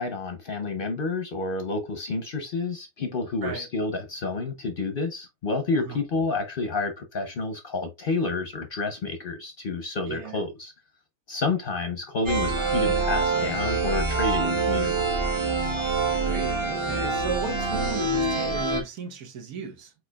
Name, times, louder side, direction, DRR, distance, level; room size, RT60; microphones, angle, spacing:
voice 1, 0.0-10.7 11.3-15.2, left 3 dB, 50° left, 0.7 m, -29 dB
voice 2, 10.1-10.4 16.1-19.9, right 5 dB, 90° right, 1.5 m, -35 dB
sound 1, 12.3-18.8, right 3 dB, 30° right, 0.6 m, -25 dB
4.7 x 4.3 x 2.3 m
omnidirectional pair, 1.5 m